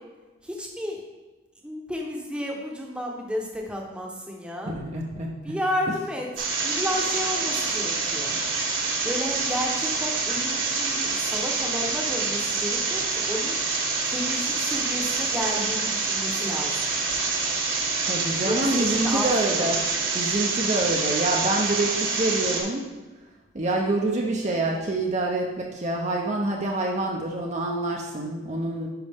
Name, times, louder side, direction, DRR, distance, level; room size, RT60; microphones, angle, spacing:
voice 1, 0.4-1.0 1.6-4.8 5.4-8.4 9.0-13.9 14.1-16.8 18.4-19.7, equal, 5° right, -1 dB, 0.9 m, -32 dB
voice 2, 4.7-5.3 18.1-19.8 20.1-22.9 23.5-28.9, right 2 dB, 35° right, 0 dB, 0.7 m, -26 dB
sound 1, 6.4-22.6, right 4 dB, 75° right, 1.6 m, -26 dB
10.5 x 5.3 x 3.5 m, 1.2 s
head